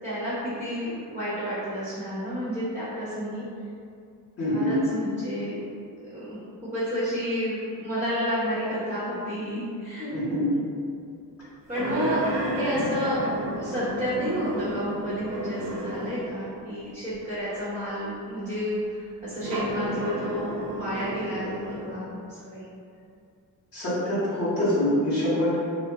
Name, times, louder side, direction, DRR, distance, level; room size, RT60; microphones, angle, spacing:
voice 1, 0.0-3.4 4.5-5.6 6.1-10.1 11.7-13.2 13.6-22.7, equal, 15° right, -13 dB, 1.2 m, -31 dB
voice 2, 4.4-4.8 10.1-10.5 23.7-25.6, left 1 dB, 40° left, -10 dB, 1.4 m, -25 dB
sound 1, 11.7-16.4 17.1-17.2 19.3-21.9, right 1 dB, 55° right, 0.8 m, -31 dB
2.5 x 2.1 x 3.7 m, 2.4 s
supercardioid pair, 55°, 43 cm